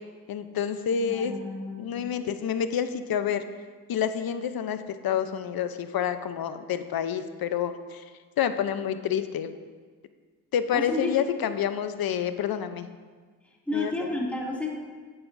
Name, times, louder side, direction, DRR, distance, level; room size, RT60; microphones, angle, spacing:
voice 1, 0.3-1.3 1.8-3.4 3.9-8.0 8.4-9.5 10.5-12.9 13.7-13.9, left 8 dB, 60° left, 11 dB, 0.7 m, -28 dB
voice 2, 1.0-2.1 10.7-11.1 13.4-14.7, left 2 dB, 5° left, -4 dB, 2.5 m, -31 dB
11.0 x 8.8 x 2.7 m, 1.5 s
supercardioid pair, 55°, 41 cm